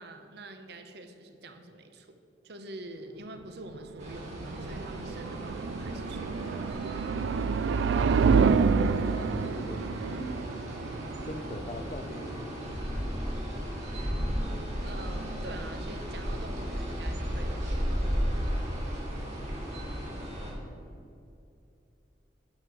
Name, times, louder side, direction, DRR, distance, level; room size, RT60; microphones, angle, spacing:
voice 1, 0.0-2.2 2.4-6.6 14.8-19.2, right 2 dB, 60° right, 7 dB, 0.8 m, -46 dB
sound 1, 3.8-12.7, right 5 dB, 80° right, 0.3 m, -28 dB
sound 2, 4.0-20.5, equal, 40° right, 2.4 m, -35 dB
voice 2, 8.8-10.5 11.2-13.0, left 1 dB, 35° left, 8 dB, 0.7 m, -42 dB
10.5 x 6.7 x 4.9 m, 2.6 s
head